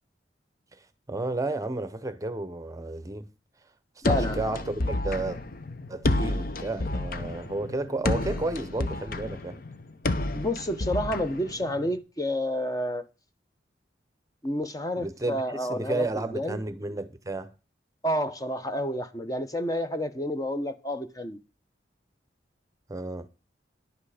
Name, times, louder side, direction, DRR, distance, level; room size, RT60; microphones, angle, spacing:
voice 1, 1.1-3.3 4.0-5.4 5.9-9.6 15.0-17.5 22.9-23.3, right 2 dB, 20° right, 0.7 m, -32 dB
sound 1, 4.0-12.0, left 2 dB, 50° left, 0.9 m, -30 dB
voice 2, 4.0-4.4 10.3-13.0 14.4-16.6 18.0-21.4, equal, 20° left, 0.8 m, -30 dB
11.0 x 8.1 x 4.9 m
head